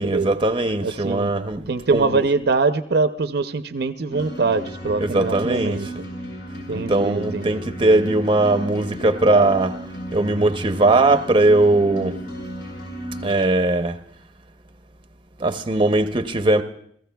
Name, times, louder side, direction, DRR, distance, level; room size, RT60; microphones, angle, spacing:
voice 1, 0.0-1.6 1.9-2.2 5.0-5.8 6.7-9.8 10.1-12.2 13.2-14.0 15.4-16.6, right 2 dB, 30° right, 0.7 m, -19 dB
voice 2, 0.8-1.3 1.7-5.9 6.7-7.6, right 4 dB, 65° right, 0.6 m, -23 dB
sound 1, 4.1-13.3, equal, 85° left, 5.1 m, -34 dB
29.5 x 15.5 x 2.3 m
head